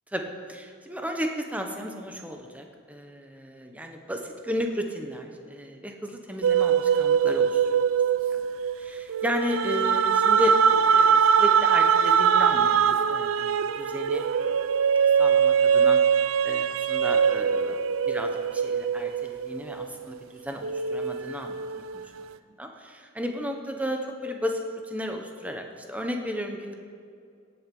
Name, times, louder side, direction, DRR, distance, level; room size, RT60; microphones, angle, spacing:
voice 1, 0.5-7.8 8.3-8.4 8.8-14.2 15.2-21.6 21.9-22.0 22.5-26.7, equal, 5° right, 3 dB, 1.0 m, -34 dB
sound 1, 6.4-20.2 20.6-22.2, right 7 dB, 75° right, 0.5 m, -22 dB
17.5 x 7.9 x 5.4 m, 2.3 s
head